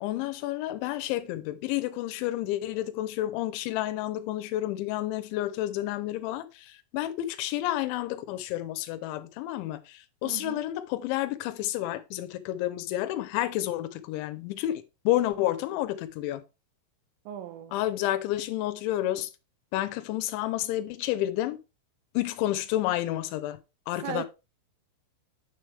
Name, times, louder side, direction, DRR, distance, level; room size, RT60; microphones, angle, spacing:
voice 1, 0.0-16.4 17.7-19.3 19.7-21.6 22.1-23.6 23.9-24.3, left 14 dB, 80° left, 2.9 m, -30 dB
voice 2, 10.2-10.6 17.3-17.8 24.0-24.3, right 11 dB, 90° right, 3.4 m, -37 dB
9.8 x 6.2 x 3.3 m
omnidirectional pair, 5.8 m